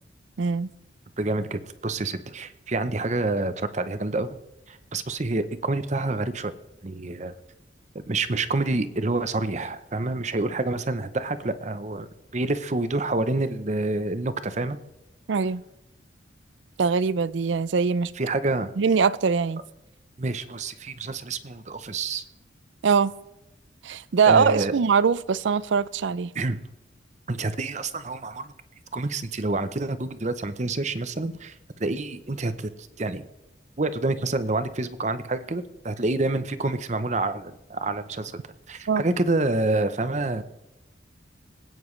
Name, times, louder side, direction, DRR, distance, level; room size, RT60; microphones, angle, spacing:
voice 1, 0.4-0.7 15.3-15.6 16.8-18.1 18.8-19.6 22.8-23.1 23.8-26.3 38.9-39.0, right 5 dB, 80° right, 0.5 m, -22 dB
voice 2, 1.2-4.3 4.7-6.5 6.8-7.3 8.1-12.1 12.3-14.8 18.2-18.7 20.2-22.2 24.3-24.7 26.3-26.6 27.3-28.5 28.9-33.3 33.8-38.3 38.7-40.4, right 2 dB, 40° right, 0.7 m, -27 dB
25.5 x 9.3 x 3.2 m
head